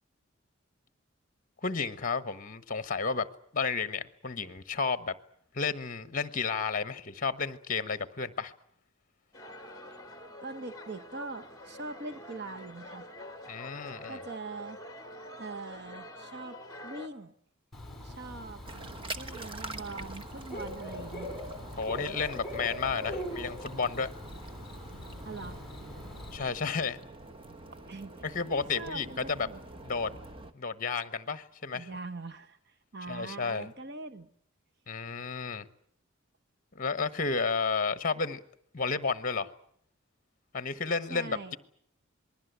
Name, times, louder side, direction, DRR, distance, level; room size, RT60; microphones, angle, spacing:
voice 1, 1.6-3.3 3.5-5.1 5.5-8.5 13.5-14.2 21.8-24.1 26.3-27.0 28.2-29.5 29.8-30.1 30.5-31.9 33.1-33.7 34.9-35.7 36.7-38.4 38.7-39.5 40.5-41.6, left 5 dB, 40° left, 1.2 m, -32 dB
sound 1, 9.3-17.1, left 1 dB, 20° left, 2.0 m, -46 dB
voice 2, 10.4-13.1 14.1-14.8 15.4-16.6 16.8-17.3 18.0-18.6 19.1-21.3 25.2-25.7 27.7-28.3 28.5-29.6 31.7-34.3 41.1-41.6, right 3 dB, 50° right, 1.1 m, -42 dB
Bird / Cricket, 17.7-26.4, left 1 dB, ahead, 5.3 m, -41 dB
sound 2, 18.6-30.5, right 2 dB, 25° right, 1.2 m, -46 dB
27.0 x 20.5 x 8.1 m
head